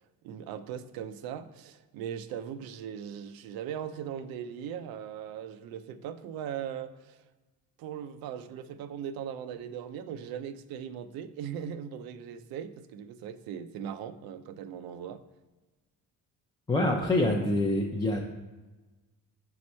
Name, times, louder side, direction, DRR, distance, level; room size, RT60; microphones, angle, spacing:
voice 1, 0.2-7.2 7.8-15.2, right 8 dB, 90° right, 11 dB, 0.5 m, -39 dB
voice 2, 16.7-18.2, left 1 dB, 10° left, 0 dB, 0.4 m, -26 dB
5.1 x 4.7 x 4.2 m, 1.2 s
cardioid pair, 125°, 35 cm